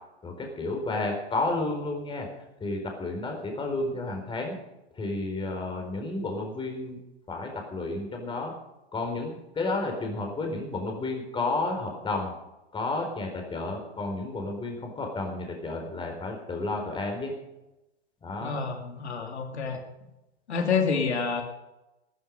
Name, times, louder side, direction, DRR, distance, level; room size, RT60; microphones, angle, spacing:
voice 1, 0.2-2.3 2.6-4.6 5.0-7.0 7.3-8.5 8.9-12.3 12.7-17.3 18.2-18.6, left 2 dB, 15° left, 2 dB, 4.3 m, -31 dB
voice 2, 18.4-19.8 20.5-21.4, left 5 dB, 80° left, 4 dB, 2.8 m, -28 dB
14.0 x 13.0 x 5.2 m, 0.96 s
hypercardioid pair, 120°, 33 cm